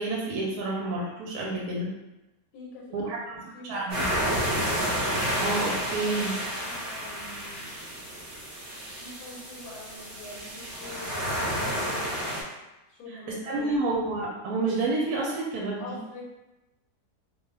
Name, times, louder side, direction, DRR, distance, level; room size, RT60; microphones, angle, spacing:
voice 1, 0.0-1.9 2.9-3.4 3.6-4.0 5.4-6.4 13.3-16.0, right 2 dB, 75° right, -3 dB, 1.0 m, -29 dB
voice 2, 2.5-4.4 6.6-7.8 9.0-12.5 12.9-13.7 15.8-16.3, left 2 dB, 75° left, -4 dB, 1.2 m, -45 dB
sound 1, 3.9-12.4, equal, 50° right, 0.8 m, -30 dB
2.6 x 2.2 x 3.2 m, 1.0 s
omnidirectional pair, 1.7 m